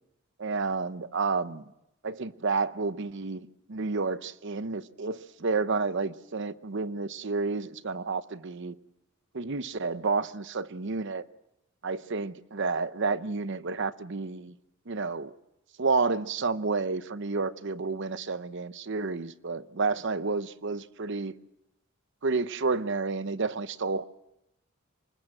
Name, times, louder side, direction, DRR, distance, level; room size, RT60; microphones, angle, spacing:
voice 1, 0.4-1.6 2.0-8.8 9.3-11.2 11.8-14.5 14.9-15.3 15.8-21.3 22.2-24.0, right 4 dB, 60° right, 0.8 m, -30 dB
25.0 x 20.5 x 7.7 m
head